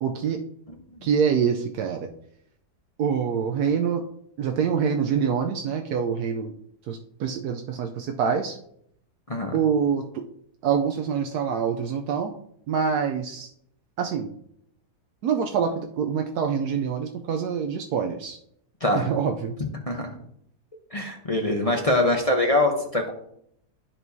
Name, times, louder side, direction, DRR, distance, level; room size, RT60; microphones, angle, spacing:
voice 1, 0.0-0.4 1.0-2.1 3.0-4.0 4.4-6.5 6.9-8.6 9.5-10.2 10.6-12.3 12.7-13.5 14.0-14.3 15.2-18.4 18.9-19.5, right 7 dB, 75° right, 4 dB, 1.1 m, -25 dB
voice 2, 18.8-19.1 19.9-20.2 20.9-23.1, left 1 dB, 30° left, 1 dB, 0.6 m, -23 dB
13.0 x 4.6 x 2.7 m, 0.70 s
omnidirectional pair, 1.7 m